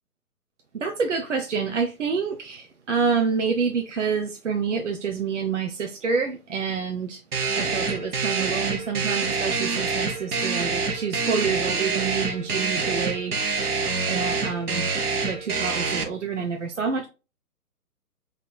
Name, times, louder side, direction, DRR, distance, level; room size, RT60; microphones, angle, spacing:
voice 1, 0.7-7.2 7.5-13.5 14.1-14.9 15.3-17.1, right 5 dB, 50° right, 0.5 m, -27 dB
sound 1, 7.3-16.0, right 4 dB, 70° right, 1.0 m, -26 dB
4.2 x 3.6 x 2.2 m
figure-of-eight pair, 135°, 47 cm